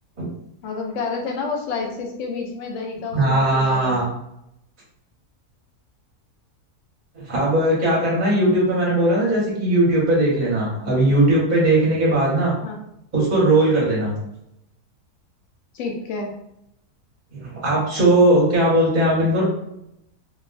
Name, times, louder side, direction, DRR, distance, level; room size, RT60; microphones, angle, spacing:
voice 1, 0.6-4.1 12.6-12.8 15.7-16.3, left 4 dB, 60° left, 1 dB, 0.8 m, -29 dB
voice 2, 3.1-4.1 7.1-12.5 13.1-14.1 17.3-19.4, right 1 dB, 40° right, -5 dB, 0.8 m, -19 dB
2.9 x 2.5 x 2.4 m, 0.79 s
omnidirectional pair, 1.7 m